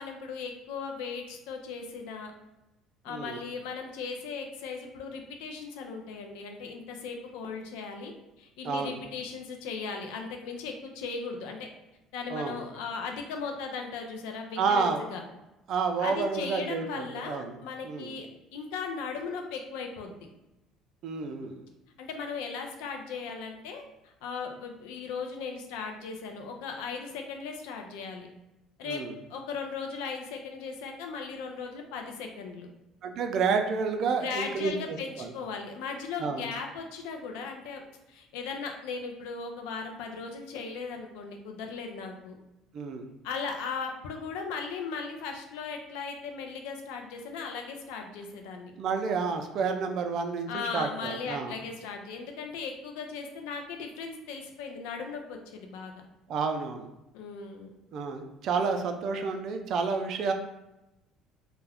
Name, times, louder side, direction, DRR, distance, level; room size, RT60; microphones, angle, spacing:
voice 1, 0.0-2.3 3.0-11.7 12.1-15.2 16.0-18.3 18.5-20.2 22.0-28.3 28.8-29.0 29.3-32.7 34.2-37.8 38.1-42.4 43.2-48.7 50.5-55.9 57.1-57.7, left 5 dB, 80° left, 3 dB, 0.4 m, -37 dB
voice 2, 3.1-3.4 8.6-9.0 12.3-12.6 14.6-15.0 15.7-17.6 17.8-18.2 21.0-21.6 28.8-29.1 33.0-35.3 36.2-36.5 42.7-43.1 48.8-51.6 56.3-56.9 57.9-60.3, right 5 dB, 60° right, 6 dB, 0.4 m, -30 dB
2.3 x 2.1 x 3.4 m, 0.95 s
supercardioid pair, 80°, 0 cm